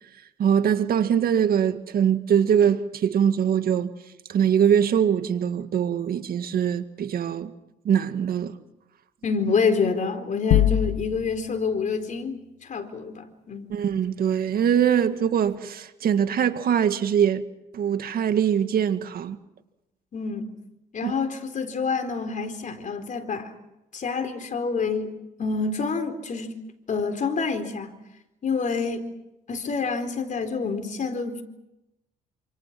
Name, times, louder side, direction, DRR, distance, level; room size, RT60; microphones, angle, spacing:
voice 1, 0.4-3.9 4.3-7.5 7.9-8.6 13.7-17.4 17.7-19.4 21.0-21.1, right 8 dB, 60° right, 2.0 m, -22 dB
voice 2, 9.2-12.4 12.6-13.7 20.1-20.5 20.9-23.5 23.9-25.1 25.4-26.5 26.9-27.9 28.4-29.0 29.5-31.4, left 4 dB, 45° left, 4.3 m, -27 dB
sound 1, 10.5-11.5, left 12 dB, 75° left, 0.8 m, -21 dB
28.5 x 26.5 x 6.1 m
supercardioid pair, 75°, 17 cm